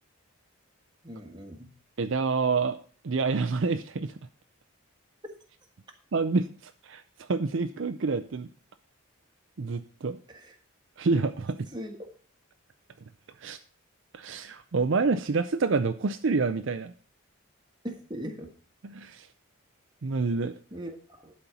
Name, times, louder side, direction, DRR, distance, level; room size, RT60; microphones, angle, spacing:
voice 1, 1.0-1.7 10.3-10.5 11.7-12.1 17.8-18.5 20.7-21.3, equal, 20° right, 3 dB, 1.4 m, -39 dB
voice 2, 2.0-2.8 3.0-4.1 6.1-8.5 9.6-10.2 11.0-11.6 13.4-13.6 14.1-16.9 18.8-19.3 20.0-20.5, right 4 dB, 55° right, 9 dB, 0.5 m, -27 dB
11.5 x 4.4 x 6.9 m, 0.42 s
head